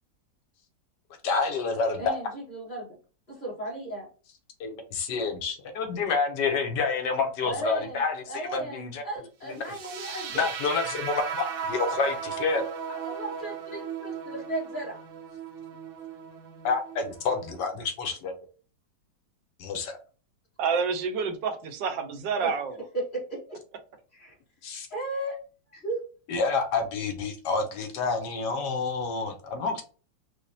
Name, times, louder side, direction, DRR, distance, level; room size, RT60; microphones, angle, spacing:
voice 1, 1.2-2.1 4.6-9.0 10.3-12.6 16.6-18.3 19.6-20.0 24.6-24.9 26.3-29.8, left 4 dB, 75° left, 1.3 m, -28 dB
voice 2, 2.0-2.9 3.3-4.1 7.4-8.0 8.3-10.5 12.9-15.0 22.4-22.5 22.9-23.6 24.1-24.3 24.9-25.4 25.7-26.0, right 1 dB, 30° left, 1.4 m, -35 dB
sound 1, 9.6-17.6, right 7 dB, 70° right, 1.1 m, -36 dB
voice 3, 20.6-22.8, right 5 dB, 85° right, 1.3 m, -28 dB
4.9 x 2.1 x 2.6 m
omnidirectional pair, 2.0 m